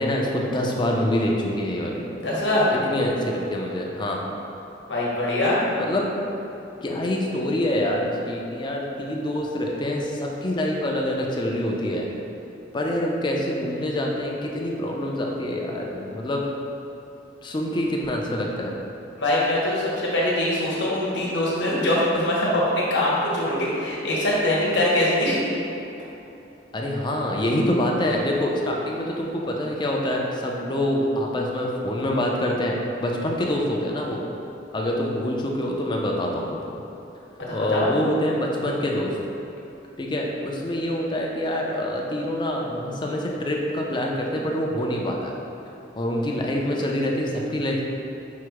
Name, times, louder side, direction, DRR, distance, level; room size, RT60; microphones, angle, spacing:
voice 1, 0.0-2.1 2.7-4.3 5.8-6.1 6.8-12.1 12.7-16.4 17.4-18.7 26.7-34.3 34.7-36.7 37.5-39.1 40.0-45.3 46.0-47.8, left 1 dB, 25° left, -1 dB, 0.4 m, -26 dB
voice 2, 2.2-2.7 4.9-5.6 19.2-25.4 37.5-37.9, left 1 dB, 65° left, -6 dB, 0.9 m, -23 dB
4.6 x 2.0 x 4.6 m, 2.9 s
head